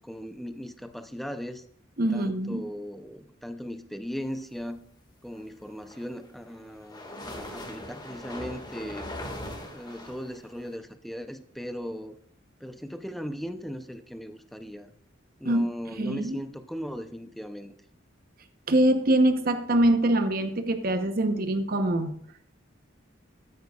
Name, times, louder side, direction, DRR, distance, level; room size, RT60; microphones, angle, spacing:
voice 1, 0.0-1.6 2.1-4.8 5.2-9.1 9.7-12.2 12.6-14.9 15.4-17.7, equal, ahead, 9 dB, 0.6 m, -38 dB
voice 2, 2.0-2.6 15.4-16.4 18.7-22.1, right 1 dB, 50° right, 8 dB, 0.9 m, -24 dB
sound 1, 5.7-10.8, left 1 dB, 20° left, 1.9 m, -40 dB
13.0 x 9.3 x 2.4 m, 0.63 s
head